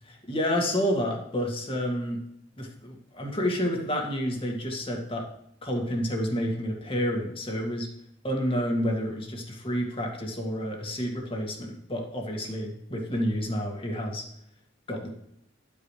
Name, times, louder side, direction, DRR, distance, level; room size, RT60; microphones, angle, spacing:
voice 1, 0.0-2.2 2.6-5.2 5.6-7.9 8.2-14.3 14.9-15.1, equal, 30° left, 1 dB, 2.0 m, -29 dB
11.5 x 8.6 x 3.3 m, 0.76 s
head